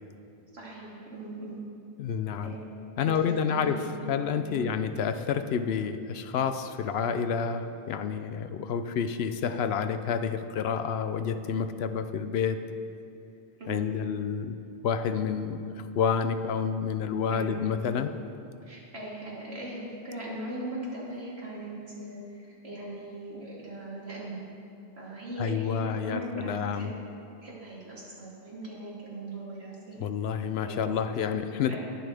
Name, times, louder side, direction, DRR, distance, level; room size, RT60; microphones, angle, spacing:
voice 1, 0.5-1.6 2.4-2.7 3.0-3.7 4.0-4.1 4.5-4.6 13.6-14.0 17.3-17.6 18.6-24.4 25.0-26.9 27.4-30.0 30.6-30.9 31.7-31.8, right 1 dB, 70° right, -6 dB, 2.9 m, -39 dB
voice 2, 2.0-2.5 3.0-12.6 13.7-14.6 14.8-18.1 25.4-26.9 30.0-31.8, left 7 dB, 75° left, 10 dB, 0.8 m, -29 dB
20.0 x 7.2 x 3.5 m, 2.6 s
omnidirectional pair, 1.1 m